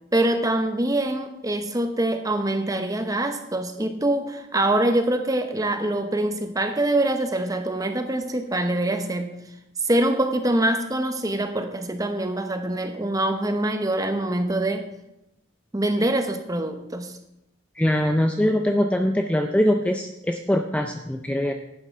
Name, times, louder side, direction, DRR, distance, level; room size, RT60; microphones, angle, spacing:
voice 1, 0.1-9.4 9.8-14.9 15.7-17.1, right 1 dB, 15° right, 7 dB, 0.8 m, -24 dB
voice 2, 17.8-21.5, equal, 5° left, 4 dB, 0.4 m, -22 dB
11.0 x 8.6 x 4.5 m, 0.88 s
head